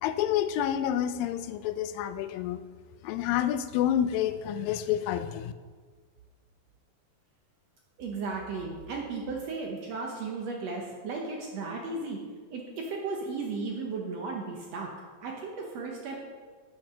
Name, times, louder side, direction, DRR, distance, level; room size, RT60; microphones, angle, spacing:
voice 1, 0.0-2.6 3.0-5.5, left 10 dB, 90° left, 11 dB, 2.3 m, -28 dB
voice 2, 8.0-12.2 12.5-14.9 15.2-16.2, right 4 dB, 70° right, 0 dB, 1.7 m, -35 dB
8.6 x 6.4 x 5.7 m, 1.5 s
omnidirectional pair, 3.9 m